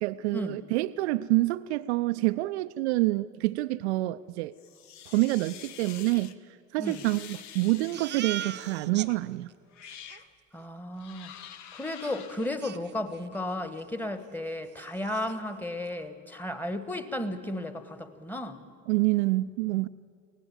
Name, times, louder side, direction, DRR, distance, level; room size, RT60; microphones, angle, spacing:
voice 1, 0.0-4.5 5.1-6.4 6.7-9.5 18.9-19.9, right 19 dB, 55° right, 11 dB, 0.5 m, -27 dB
sound 1, 4.6-6.3 6.8-8.4 9.1-9.2 9.7-10.3 11.0-12.5, left 9 dB, 45° left, 1.1 m, -47 dB
Crying sobbing, 7.9-9.1 9.5-9.6 9.8-10.2 12.0-12.1 12.6-13.4 13.7-13.9 14.3-14.4 14.7-15.4, right 10 dB, 25° right, 0.8 m, -40 dB
voice 2, 10.5-11.3 11.7-18.6, left 1 dB, 5° left, 10 dB, 1.4 m, -34 dB
24.0 x 18.0 x 7.7 m, 2.3 s
figure-of-eight pair, 65°, 39 cm